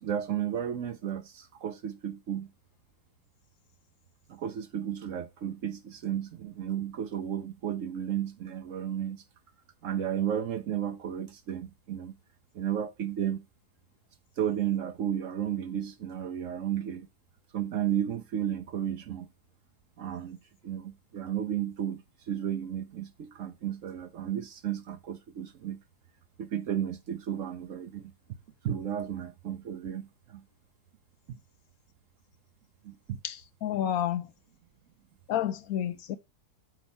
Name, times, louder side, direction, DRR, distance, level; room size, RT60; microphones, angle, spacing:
voice 1, 0.0-2.5 4.3-9.2 9.8-12.1 12.5-13.4 14.4-17.1 17.5-19.3 20.0-20.4 20.6-25.8 26.4-28.1 28.6-30.4 31.3-31.4 32.8-33.2, right 10 dB, 60° right, 1.0 m, -33 dB
voice 2, 33.2-34.3 35.3-36.2, left 10 dB, 70° left, 1.0 m, -30 dB
6.3 x 4.4 x 5.4 m
omnidirectional pair, 1.7 m